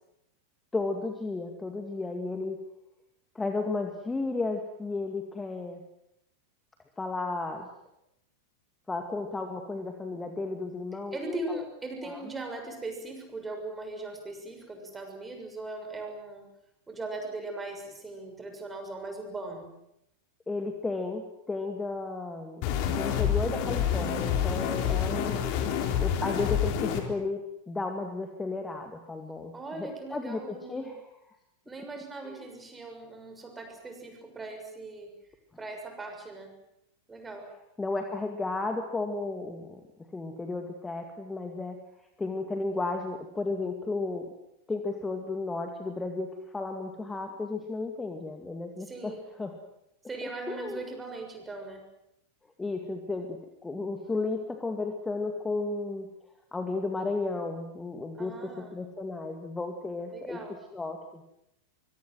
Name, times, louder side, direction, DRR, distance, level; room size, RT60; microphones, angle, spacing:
voice 1, 0.7-2.6 3.3-5.8 7.0-7.7 8.9-11.6 12.0-12.2 20.5-25.5 26.0-31.1 32.2-32.5 37.8-41.8 42.2-44.3 44.7-49.1 49.4-49.5 50.5-50.8 52.6-56.1 56.5-60.4 60.7-61.2, left 3 dB, 10° left, 5 dB, 2.3 m, -33 dB
voice 2, 11.1-16.5 16.9-19.7 29.5-30.9 31.6-35.1 35.6-36.5 37.1-37.5 48.9-49.2 50.1-51.8 58.1-58.7 60.1-60.6, right 2 dB, 15° right, 4 dB, 6.7 m, -39 dB
sound 1, 22.6-27.0, left 8 dB, 45° left, 3.9 m, -28 dB
24.5 x 23.0 x 7.8 m, 0.83 s
figure-of-eight pair, 90°, 0 cm